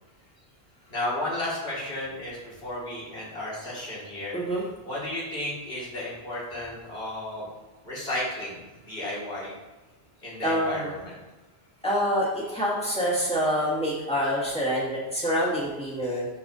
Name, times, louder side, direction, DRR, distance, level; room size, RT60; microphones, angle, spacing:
voice 1, 0.9-4.4 4.8-7.5 7.8-8.6 8.9-9.5 10.2-11.2, left 1 dB, 70° left, -7 dB, 2.5 m, -33 dB
voice 2, 4.3-4.6 10.4-10.9 11.8-16.3, equal, 5° left, -7 dB, 2.2 m, -26 dB
11.5 x 4.7 x 2.7 m, 1.2 s
omnidirectional pair, 1.1 m